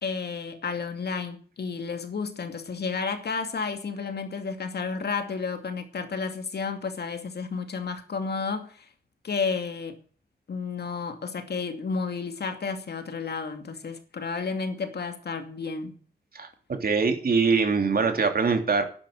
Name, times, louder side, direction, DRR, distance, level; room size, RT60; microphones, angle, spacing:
voice 1, 0.0-8.9 9.2-10.0 10.5-16.0, left 5 dB, 80° left, 2.4 m, -32 dB
voice 2, 16.3-18.8, right 4 dB, 65° right, 3.0 m, -23 dB
11.5 x 10.5 x 7.5 m
wide cardioid pair, 95°, 17 cm